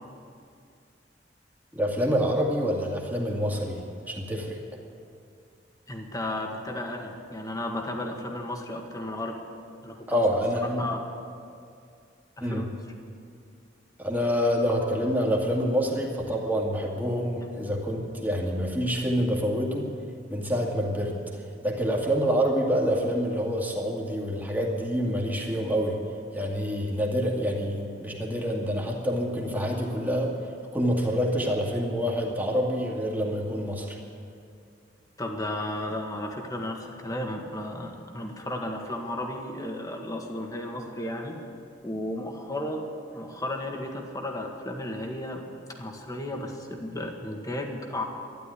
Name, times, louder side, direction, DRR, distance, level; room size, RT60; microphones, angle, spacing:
voice 1, 1.7-4.6 10.1-10.8 12.4-12.7 14.0-19.9 20.3-26.0 26.3-30.3 30.7-34.0, equal, 10° right, -1 dB, 2.2 m, -27 dB
voice 2, 5.9-9.4 9.8-10.3 10.8-11.0 12.4-12.7 35.2-41.4 41.8-42.9 43.1-45.4 45.8-48.0, left 1 dB, 20° left, 2 dB, 1.8 m, -34 dB
13.0 x 11.0 x 9.9 m, 2.4 s
head